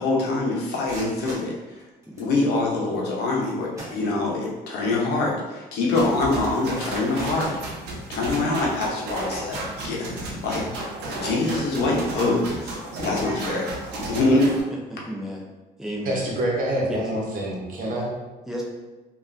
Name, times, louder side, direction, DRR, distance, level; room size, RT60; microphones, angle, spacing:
voice 1, 0.0-1.5 2.2-7.5 8.1-10.7 11.2-12.7 13.0-14.5, left 2 dB, 75° left, -3 dB, 0.8 m, -24 dB
sound 1, 0.8-2.4 3.3-3.4 3.7-4.6 5.0-5.1 5.6-5.7 6.3-8.2 8.8-9.0 9.5-10.3, right 1 dB, 20° right, 1.1 m, -42 dB
voice 2, 5.9-6.2 14.7-15.4 15.8-16.3 16.9-17.0 18.5-18.6, equal, 5° right, -2 dB, 0.6 m, -33 dB
sound 2, 5.9-14.6, right 2 dB, 80° right, 0.7 m, -33 dB
voice 3, 16.0-18.1, right 1 dB, 55° right, -3 dB, 0.9 m, -26 dB
3.1 x 2.4 x 2.5 m, 1.1 s
cardioid pair, 110°, 17 cm